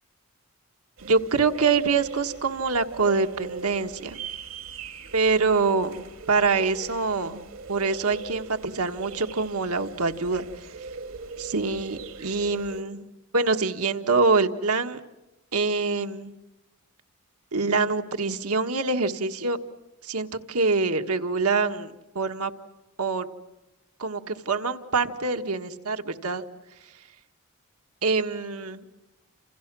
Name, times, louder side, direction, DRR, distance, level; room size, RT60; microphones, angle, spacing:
sound 1, 1.0-12.8, right 5 dB, 70° right, 1.6 m, -40 dB
voice 1, 1.0-4.2 5.1-7.4 7.7-10.9 11.4-13.1 13.3-15.0 15.5-16.3 17.5-19.6 20.0-22.5 23.0-23.3 24.0-26.5 26.7-27.1 28.0-28.8, right 4 dB, 90° right, 7 dB, 1.6 m, -25 dB
29.0 x 28.5 x 6.2 m, 1.0 s
head